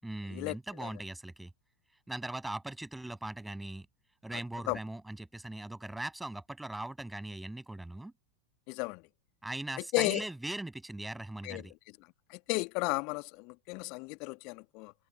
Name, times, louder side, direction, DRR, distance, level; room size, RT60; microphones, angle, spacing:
voice 1, 0.0-1.5 2.1-3.9 4.2-8.1 9.4-11.7, right 1 dB, 5° right, 6.8 m, -40 dB
voice 2, 8.7-9.0 9.9-10.2 11.4-11.6 12.3-14.9, left 30 dB, 45° left, 1.3 m, -33 dB
figure-of-eight pair, 90°, 0 cm